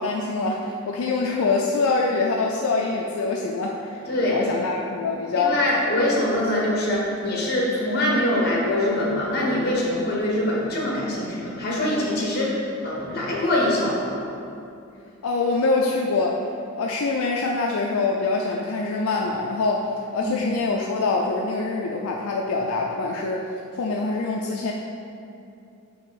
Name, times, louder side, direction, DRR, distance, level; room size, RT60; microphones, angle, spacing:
voice 1, 0.0-5.6 6.4-6.5 7.2-7.3 15.2-16.4 16.8-23.4 23.7-24.7, left 3 dB, 75° left, 0 dB, 0.4 m, -25 dB
voice 2, 4.1-4.4 5.3-14.1 20.2-20.5, left 1 dB, 45° left, -4 dB, 1.3 m, -24 dB
5.5 x 4.6 x 4.0 m, 2.6 s
head